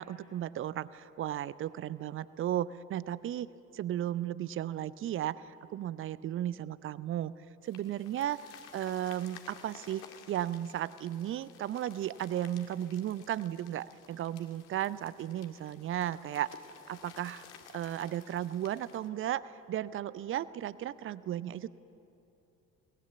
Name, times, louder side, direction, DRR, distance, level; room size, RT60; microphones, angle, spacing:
voice 1, 0.0-3.5 3.7-7.3 7.6-8.4 8.7-16.6 16.9-17.5 17.7-21.7, right 12 dB, 30° right, 18 dB, 0.6 m, -35 dB
sound 1, 7.6-19.1, left 8 dB, 55° left, 2.0 m, -55 dB
22.0 x 19.5 x 8.3 m, 2.8 s
figure-of-eight pair, 60°, 45 cm